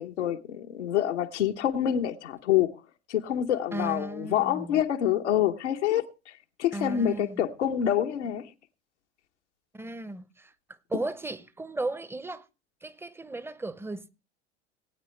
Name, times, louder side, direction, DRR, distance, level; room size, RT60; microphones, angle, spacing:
voice 1, 0.0-2.7 3.1-6.3 6.6-8.5, left 10 dB, 80° left, 0.9 m, -27 dB
voice 2, 3.7-4.8 6.7-7.4 9.7-12.5 12.8-14.1, right 2 dB, 5° right, 0.8 m, -35 dB
19.0 x 9.1 x 3.1 m
hypercardioid pair, 75°, 35 cm